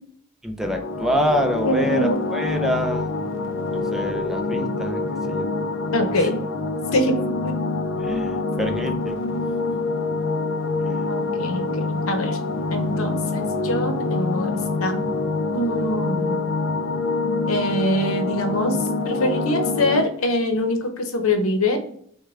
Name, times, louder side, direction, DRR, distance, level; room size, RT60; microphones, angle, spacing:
voice 1, 0.4-3.1 3.7-5.0 5.3-5.5 6.2-6.3 8.0-9.2 10.9-11.0, equal, ahead, 3 dB, 0.4 m, -26 dB
sound 1, 0.6-20.0, left 3 dB, 60° left, 0.4 m, -26 dB
voice 2, 1.6-2.2 5.9-6.4 6.9-7.1 7.4-7.5 8.6-8.8 11.1-12.4 12.7-14.5 14.8-15.1 15.5-16.4 17.5-18.8 19.1-21.8, left 1 dB, 80° left, 6 dB, 0.8 m, -24 dB
6.4 x 2.2 x 3.6 m, 0.64 s
head